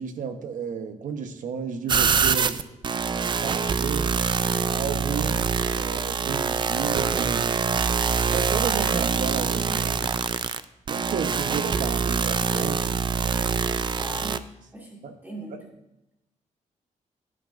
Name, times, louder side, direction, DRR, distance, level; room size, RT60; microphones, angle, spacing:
voice 1, 0.0-2.6 3.4-4.2 4.6-5.5 5.7-7.5 8.3-10.1 10.9-13.0 15.0-15.1, right 6 dB, 80° right, 7 dB, 1.1 m, -33 dB
sound 1, 1.9-14.4, right 6 dB, 35° right, 0.4 m, -25 dB
voice 2, 14.0-14.4 14.7-15.7, right 2 dB, 15° right, -2 dB, 2.1 m, -39 dB
16.0 x 9.8 x 2.6 m, 0.92 s
wide cardioid pair, 150°, 13 cm